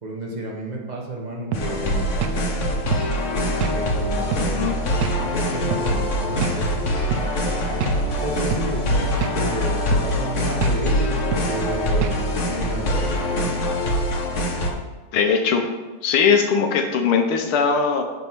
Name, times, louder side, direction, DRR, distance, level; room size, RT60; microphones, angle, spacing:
voice 1, 0.0-2.1 3.7-4.7 5.1-6.9 8.0-13.6, right 1 dB, 25° right, -1 dB, 1.1 m, -31 dB
sound 1, 1.5-14.7, left 1 dB, 45° left, 1.0 m, -23 dB
sound 2, 1.5-1.7 2.2-2.4 2.9-3.1 3.6-3.8 4.3-4.5 5.0-5.2 5.7-5.9 6.4-6.6 7.1-7.3 7.8-8.0 8.5-8.7 9.2-9.4 9.9-10.1 10.6-10.8 11.3-11.5 12.0-12.2, right 7 dB, 65° right, 0.9 m, -26 dB
voice 2, 4.4-4.8 15.1-15.7 16.0-18.0, left 6 dB, 90° left, 5 dB, 1.8 m, -20 dB
9.5 x 3.6 x 6.1 m, 1.2 s
omnidirectional pair, 2.3 m